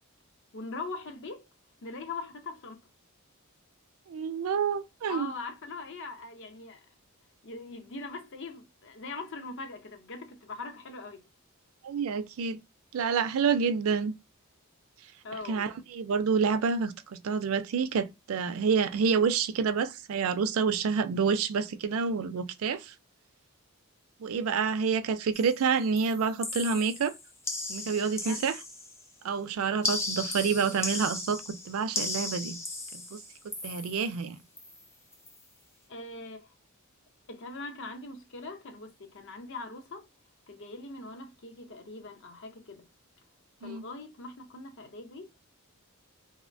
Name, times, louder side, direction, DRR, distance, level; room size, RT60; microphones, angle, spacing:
voice 1, 0.5-1.5 1.8-2.8 5.1-6.9 7.4-11.2 15.2-15.7 28.1-28.5 35.9-36.5 37.3-40.1 40.5-42.9 43.6-45.3, left 3 dB, 55° left, 0.6 m, -41 dB
voice 2, 4.1-5.3 11.8-12.6 12.9-14.1 15.5-16.9 17.2-22.9 24.2-27.1 27.7-28.6 29.2-32.6 32.9-33.2 33.6-34.4 43.6-43.8, right 6 dB, 65° right, 0.4 m, -28 dB
sound 1, 25.3-25.6 26.0-29.1 29.8-34.2 34.6-34.8 35.1-35.4, left 2 dB, 10° left, 0.5 m, -36 dB
2.9 x 2.1 x 2.5 m
head